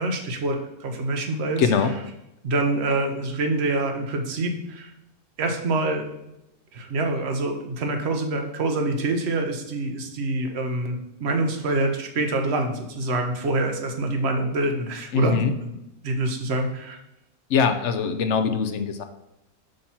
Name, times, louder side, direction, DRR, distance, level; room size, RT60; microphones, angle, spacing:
voice 1, 0.0-1.6 2.4-4.9 5.4-6.1 6.7-15.7 16.0-17.0, right 2 dB, 50° right, 4 dB, 1.0 m, -26 dB
voice 2, 1.6-1.9 15.1-15.5 17.5-19.0, left 5 dB, 65° left, 8 dB, 0.8 m, -22 dB
6.5 x 2.9 x 5.5 m, 0.87 s
omnidirectional pair, 1.5 m